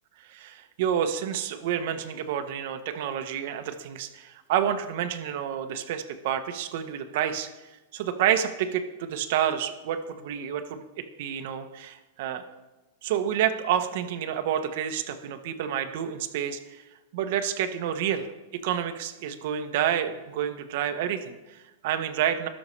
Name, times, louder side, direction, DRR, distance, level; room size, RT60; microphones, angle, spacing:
voice 1, 0.2-7.5 7.9-12.4 13.0-16.8 17.1-18.3 18.6-22.5, right 9 dB, 55° right, 8 dB, 0.9 m, -29 dB
18.5 x 6.2 x 3.2 m, 1.1 s
supercardioid pair, 155°, 0 cm